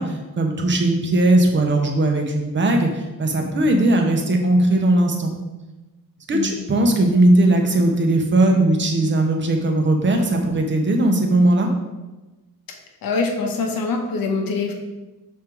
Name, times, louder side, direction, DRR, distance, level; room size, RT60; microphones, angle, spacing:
voice 1, 0.0-5.3 6.3-11.7, right 1 dB, 30° right, 3 dB, 0.8 m, -18 dB
voice 2, 13.0-14.7, left 4 dB, 70° left, 2 dB, 1.0 m, -24 dB
6.4 x 3.8 x 4.4 m, 1.1 s
wide cardioid pair, 175°, 36 cm